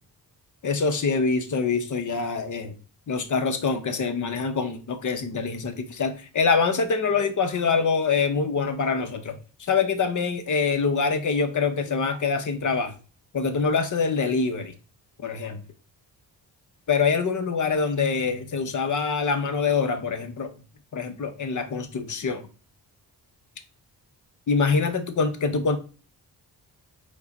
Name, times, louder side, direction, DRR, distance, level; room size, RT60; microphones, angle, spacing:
voice 1, 0.6-2.8 3.1-9.4 9.7-12.9 13.3-14.7 15.2-15.6 16.9-20.5 20.9-22.4 24.5-25.8, left 5 dB, 45° left, 8 dB, 0.9 m, -25 dB
4.6 x 2.3 x 4.1 m, 0.34 s
cardioid pair, 55°, 41 cm